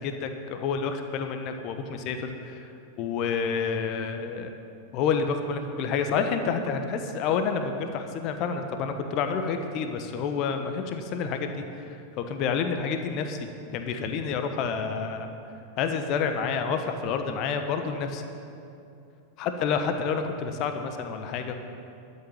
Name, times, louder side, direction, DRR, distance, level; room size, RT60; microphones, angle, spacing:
voice 1, 0.0-2.7 3.0-4.5 4.9-13.4 13.7-15.3 15.8-18.2 19.4-21.7, left 6 dB, 40° left, 6 dB, 1.1 m, -29 dB
12.5 x 8.7 x 8.9 m, 2.7 s
figure-of-eight pair, 90°, 0 cm